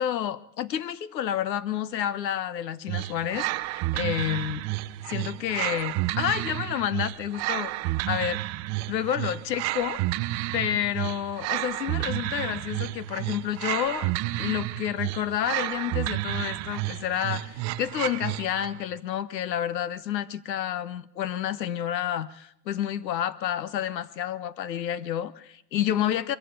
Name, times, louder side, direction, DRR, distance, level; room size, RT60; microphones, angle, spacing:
voice 1, 0.0-4.6 5.1-8.4 8.9-10.0 10.5-14.1 14.4-26.4, left 10 dB, 90° left, 16 dB, 1.3 m, -29 dB
sound 1, 2.9-18.8, right 17 dB, 35° right, 0.7 m, -31 dB
23.0 x 14.5 x 8.2 m, 0.78 s
supercardioid pair, 130°, 49 cm